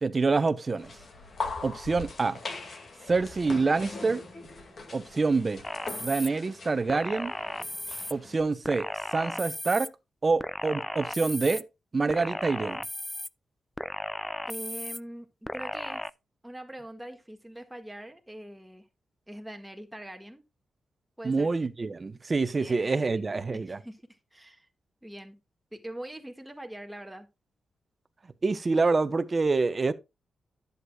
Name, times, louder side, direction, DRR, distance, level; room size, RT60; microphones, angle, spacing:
voice 1, 0.0-0.9 1.6-2.4 3.1-4.2 4.9-5.6 6.0-7.3 8.1-9.9 10.2-11.6 11.9-12.8 21.2-23.8 28.4-29.9, right 4 dB, 35° right, 0.8 m, -26 dB
sound 1, 0.8-8.4, left 3 dB, 50° left, 2.0 m, -41 dB
sound 2, 5.6-6.3 6.9-8.1 8.6-9.9 10.4-11.6 12.1-13.3 13.8-15.0 15.5-16.1, left 1 dB, 10° left, 0.3 m, -35 dB
voice 2, 14.5-16.1 16.4-18.9 19.3-20.4 21.2-21.5 22.5-24.0 24.3-24.7 25.0-25.4 25.7-27.3, right 1 dB, 5° right, 1.7 m, -43 dB
11.0 x 8.1 x 2.3 m
cardioid pair, 105°, 0 cm